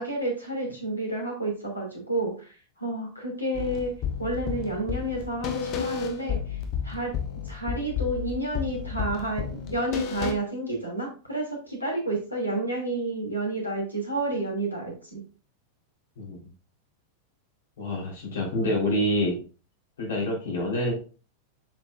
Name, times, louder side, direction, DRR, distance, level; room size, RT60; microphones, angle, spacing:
voice 1, 0.0-3.9 4.2-6.6 6.8-7.1 7.4-15.2 18.6-18.8, right 2 dB, 85° left, -1 dB, 2.9 m, -30 dB
sound 1, 3.5-10.3, left 7 dB, 40° left, 1.1 m, -32 dB
voice 2, 17.8-19.4 20.0-20.9, left 1 dB, 60° left, -3 dB, 3.9 m, -27 dB
7.6 x 5.8 x 2.6 m, 0.36 s
figure-of-eight pair, 90°, 0 cm